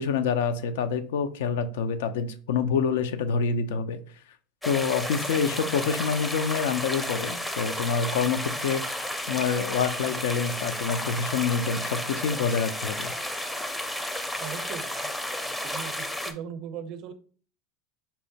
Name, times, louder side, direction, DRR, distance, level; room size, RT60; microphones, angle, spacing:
voice 1, 0.0-4.0 4.7-9.0 9.3-13.1, left 6 dB, 80° left, 11 dB, 0.4 m, -27 dB
sound 1, 4.6-16.3, left 1 dB, 10° left, 0.5 m, -32 dB
voice 2, 14.4-15.1 15.4-17.1, right 8 dB, 60° right, 10 dB, 0.5 m, -39 dB
5.4 x 2.1 x 2.7 m, 0.42 s
supercardioid pair, 100°, 0 cm